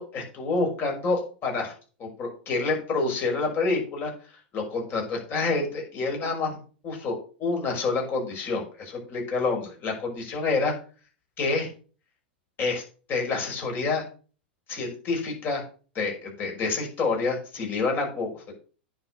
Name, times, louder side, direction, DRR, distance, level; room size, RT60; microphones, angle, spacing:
voice 1, 0.0-1.7 2.0-4.1 4.5-6.6 6.8-10.7 11.4-11.7 12.6-12.8 13.1-14.0 14.7-15.6 15.9-18.6, left 3 dB, 35° left, 1 dB, 6.0 m, -28 dB
9.7 x 6.8 x 6.6 m, 0.38 s
hypercardioid pair, 95°, 6 cm